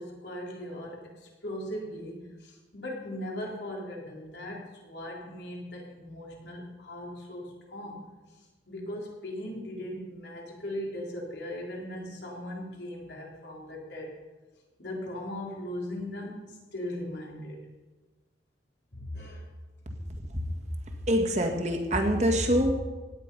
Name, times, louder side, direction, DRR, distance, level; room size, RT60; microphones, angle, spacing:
voice 1, 0.0-8.1 8.7-14.1 14.8-17.6 18.9-19.5, left 1 dB, 70° left, -2 dB, 3.8 m, -39 dB
voice 2, 21.1-22.7, equal, 40° right, 2 dB, 1.8 m, -25 dB
17.0 x 10.0 x 5.5 m, 1.2 s
head